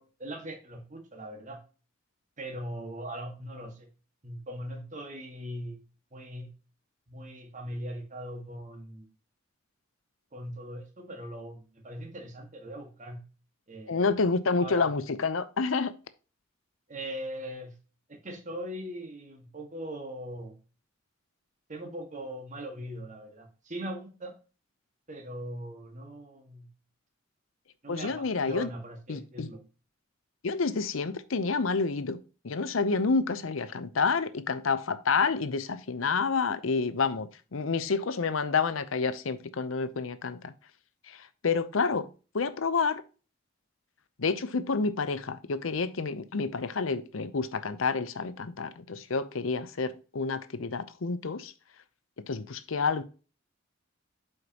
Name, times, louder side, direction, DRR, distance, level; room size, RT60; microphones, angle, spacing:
voice 1, 0.0-1.6 2.4-3.9 4.2-5.8 6.1-6.5 7.1-9.1 10.3-13.2 13.7-14.2 14.6-14.9 16.9-17.8 18.1-20.5 21.7-24.3 25.1-26.7 27.8-29.6, equal, 40° right, 1.7 m, -40 dB
voice 2, 13.9-15.9 27.9-28.7 29.1-29.5 30.4-32.2 32.4-40.5 41.1-43.0 44.2-51.5 52.3-53.0, left 4 dB, 80° left, 0.7 m, -29 dB
8.0 x 5.2 x 2.9 m
head